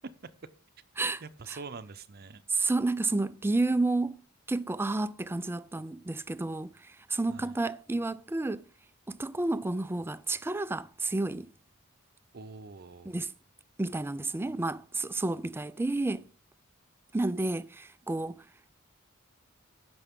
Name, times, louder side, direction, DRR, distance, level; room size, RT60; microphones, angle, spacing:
voice 1, 1.2-2.4 7.3-7.6 12.3-13.1, right 4 dB, 50° right, 0.7 m, -44 dB
voice 2, 2.5-4.2 4.5-8.6 9.1-11.5 13.1-13.3 13.8-16.2 17.1-18.4, right 2 dB, 10° right, 0.3 m, -30 dB
15.5 x 6.1 x 3.6 m
head